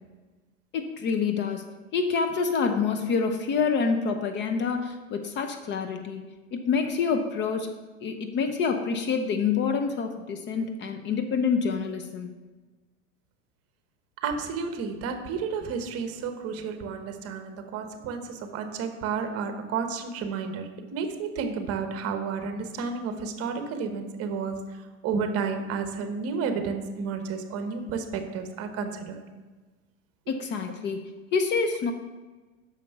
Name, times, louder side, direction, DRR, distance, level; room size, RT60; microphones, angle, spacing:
voice 1, 0.7-7.7 8.0-12.3 30.3-31.9, left 5 dB, 30° left, 7 dB, 0.6 m, -27 dB
voice 2, 14.2-24.6 25.0-29.2, right 5 dB, 40° right, 7 dB, 1.1 m, -31 dB
6.5 x 5.2 x 6.8 m, 1.3 s
hypercardioid pair, 115°, 38 cm